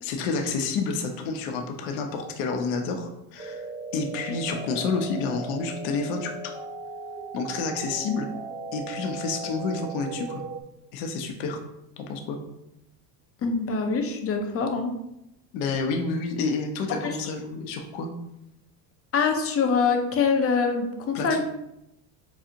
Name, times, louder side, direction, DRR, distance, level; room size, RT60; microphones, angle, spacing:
voice 1, 0.0-3.6 3.9-6.3 7.3-8.3 8.7-10.4 10.9-11.6 12.0-12.4 15.5-18.1 21.1-21.4, left 4 dB, 75° left, 4 dB, 0.8 m, -29 dB
sound 1, 3.4-10.6, right 3 dB, 20° right, 0.4 m, -37 dB
voice 2, 13.4-14.9 17.0-17.1 19.1-21.4, left 5 dB, 30° left, 5 dB, 0.5 m, -24 dB
4.9 x 2.4 x 2.8 m, 0.85 s
supercardioid pair, 85°, 50 cm